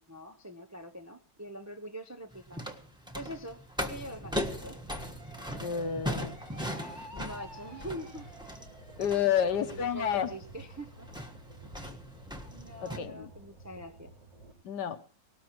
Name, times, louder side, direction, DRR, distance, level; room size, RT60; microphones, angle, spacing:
voice 1, 0.0-2.6 3.1-4.8 7.1-8.3 9.2-11.1 12.5-14.1, equal, 25° right, 6 dB, 0.3 m, -44 dB
sound 1, 2.3-13.0, equal, 5° right, 1.1 m, -39 dB
sound 2, 3.9-14.5, right 1 dB, 85° right, 4.9 m, -53 dB
sound 3, 5.2-9.3, equal, 60° right, 5.3 m, -50 dB
voice 2, 5.6-6.4 9.0-10.3 12.8-13.3 14.6-15.0, left 8 dB, 75° left, 10 dB, 1.6 m, -30 dB
19.0 x 18.5 x 3.0 m, 0.42 s
omnidirectional pair, 1.8 m